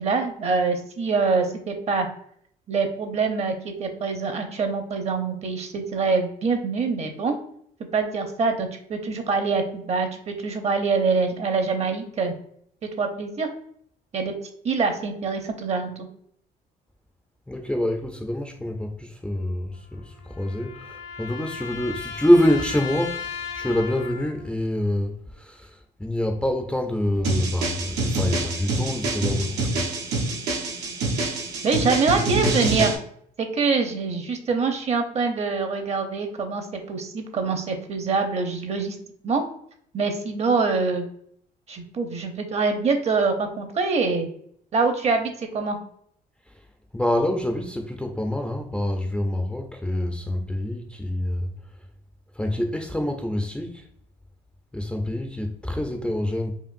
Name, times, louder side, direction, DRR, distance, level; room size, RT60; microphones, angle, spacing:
voice 1, 0.0-2.1 2.7-7.4 7.9-12.3 13.0-13.5 14.1-14.3 14.6-15.9 31.6-32.9 33.4-39.0 39.2-39.4 39.9-41.1 41.7-44.3 44.7-45.8, right 4 dB, 40° right, 0.8 m, -24 dB
voice 2, 17.5-29.9 46.5-46.6 46.9-51.5 52.3-53.9 54.7-56.5, left 1 dB, 5° left, 0.4 m, -26 dB
sound 1, 19.7-24.5, left 6 dB, 80° left, 1.0 m, -36 dB
sound 2, 27.2-33.0, right 2 dB, 85° right, 1.0 m, -26 dB
5.0 x 2.5 x 2.5 m
cardioid pair, 110°, 17 cm